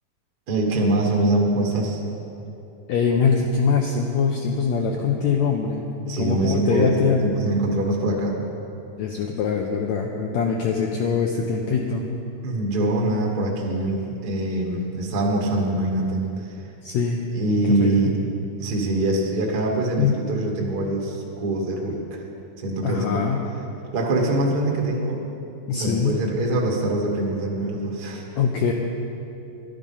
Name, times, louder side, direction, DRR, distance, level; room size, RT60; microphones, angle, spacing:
voice 1, 0.5-2.0 6.1-8.3 12.4-16.5 17.3-18.1 18.6-22.2 22.6-23.3 23.9-25.2 25.7-28.2, right 2 dB, 65° right, -1 dB, 0.9 m, -24 dB
voice 2, 2.9-5.8 6.2-7.3 9.0-12.0 16.8-17.2 17.6-17.9 20.0-20.1 22.8-23.4 25.7-26.2 28.4-28.7, left 6 dB, 90° left, 1 dB, 1.6 m, -23 dB
12.0 x 10.5 x 5.5 m, 2.8 s
omnidirectional pair, 4.0 m